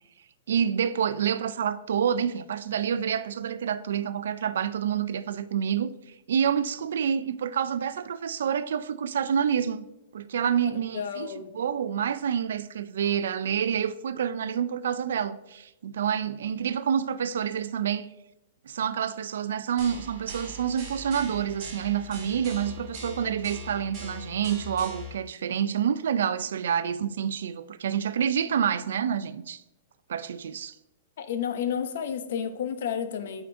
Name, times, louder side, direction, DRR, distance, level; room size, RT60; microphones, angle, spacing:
voice 1, 0.5-5.9 6.3-9.9 10.1-18.1 18.7-29.6 30.1-30.7, right 8 dB, 80° right, 0.3 m, -28 dB
voice 2, 10.6-11.5 31.2-33.4, left 8 dB, 60° left, 0.5 m, -31 dB
sound 1, 19.8-25.1, equal, 20° right, 2.1 m, -41 dB
7.8 x 4.8 x 2.6 m
supercardioid pair, 170°, 0 cm